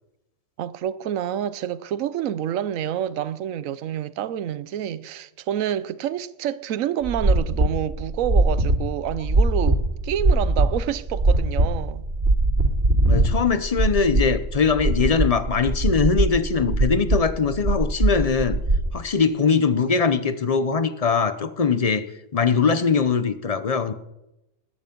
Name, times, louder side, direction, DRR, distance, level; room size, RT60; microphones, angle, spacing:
voice 1, 0.6-12.0, right 10 dB, 75° right, 1.1 m, -28 dB
sound 1, 7.0-18.9, right 2 dB, 50° right, 2.6 m, -21 dB
voice 2, 13.0-18.6 18.9-22.1 22.3-23.9, left 5 dB, 35° left, 0.7 m, -21 dB
20.5 x 9.4 x 5.3 m
omnidirectional pair, 1.5 m